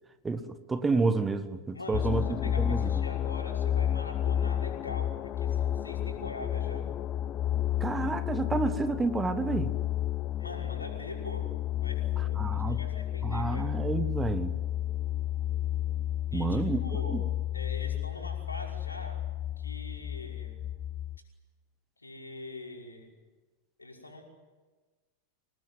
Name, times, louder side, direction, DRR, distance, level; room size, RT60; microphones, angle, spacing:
voice 1, 0.2-2.2 2.6-2.8 7.8-9.7 12.4-12.8 13.2-14.6 16.3-17.2, right 4 dB, 15° right, 11 dB, 1.6 m, -29 dB
voice 2, 1.7-6.9 10.4-11.5 11.8-13.7 16.3-17.2 17.5-19.2 19.6-20.6 22.0-23.1 23.8-24.2, left 2 dB, 80° left, 0 dB, 5.7 m, -43 dB
sound 1, 1.9-21.2, left 11 dB, 35° left, 0.7 m, -31 dB
27.5 x 19.0 x 9.5 m, 1.3 s
figure-of-eight pair, 90°, 0 cm